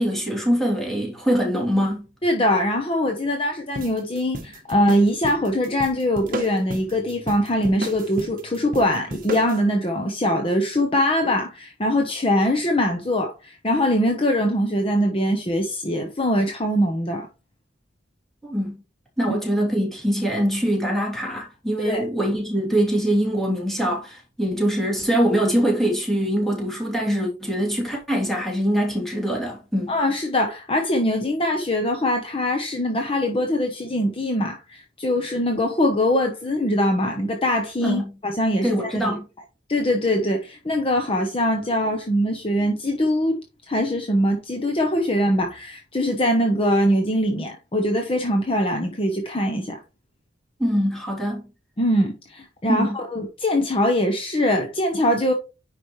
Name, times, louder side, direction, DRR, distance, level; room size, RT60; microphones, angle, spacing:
voice 1, 0.0-2.0 18.4-18.8 19.2-29.9 37.8-38.1 38.6-39.2 50.6-51.4 52.7-53.0, equal, ahead, 3.0 m, -23 dB
voice 2, 2.2-17.3 19.3-19.4 21.8-22.0 29.9-39.2 39.7-43.4 43.7-49.8 51.8-55.3, left 1 dB, 30° left, 1.0 m, -22 dB
sound 1, 3.7-9.6, right 2 dB, 45° right, 1.1 m, -34 dB
10.0 x 5.2 x 3.2 m
head